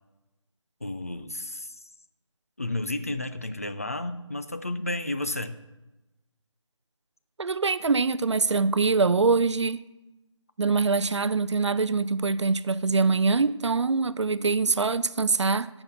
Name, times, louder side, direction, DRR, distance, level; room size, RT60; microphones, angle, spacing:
voice 1, 0.8-1.8 2.6-5.6, left 2 dB, 30° left, 0.4 m, -32 dB
voice 2, 7.4-9.8 10.6-15.7, right 4 dB, 65° right, 0.4 m, -24 dB
8.1 x 5.8 x 6.9 m
figure-of-eight pair, 165°, 16 cm